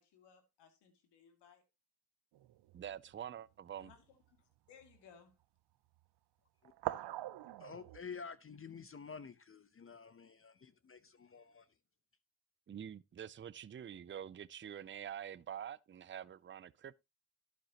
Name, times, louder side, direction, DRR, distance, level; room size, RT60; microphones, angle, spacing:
voice 1, 0.0-1.6 3.8-5.4, left 7 dB, 80° left, 2.5 m, -63 dB
sound 1, 2.3-3.1 3.7-3.9 4.8-5.0 6.6-8.0, right 15 dB, 75° right, 0.8 m, -43 dB
voice 2, 2.7-3.9 12.7-16.9, right 9 dB, 30° right, 0.5 m, -46 dB
voice 3, 7.6-11.7, left 5 dB, 30° left, 0.8 m, -50 dB
11.5 x 9.3 x 2.9 m
supercardioid pair, 55°, 41 cm